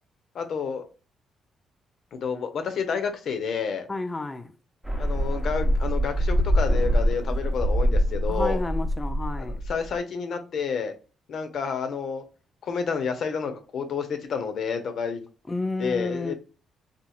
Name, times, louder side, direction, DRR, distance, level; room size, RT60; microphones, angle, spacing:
voice 1, 0.3-0.8 2.1-3.9 5.0-8.6 9.4-10.9 11.3-12.2 12.6-15.2 15.8-16.3, left 6 dB, 60° left, 0.6 m, -30 dB
voice 2, 3.9-4.5 8.3-9.6 15.5-16.3, left 2 dB, 20° left, 0.3 m, -31 dB
sound 1, 4.8-10.0, equal, 5° right, 0.7 m, -24 dB
2.9 x 2.4 x 2.3 m
cardioid pair, 90°, 0 cm